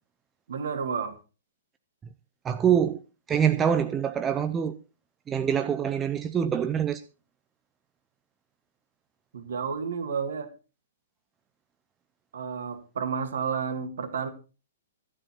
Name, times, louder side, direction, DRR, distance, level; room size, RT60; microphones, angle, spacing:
voice 1, 0.5-1.2 9.3-10.5 12.3-14.3, right 6 dB, 60° right, 1.9 m, -31 dB
voice 2, 2.4-3.0 3.3-4.8 5.3-7.0, right 8 dB, 15° right, 0.6 m, -25 dB
12.0 x 9.9 x 4.4 m
figure-of-eight pair, 115°, 0 cm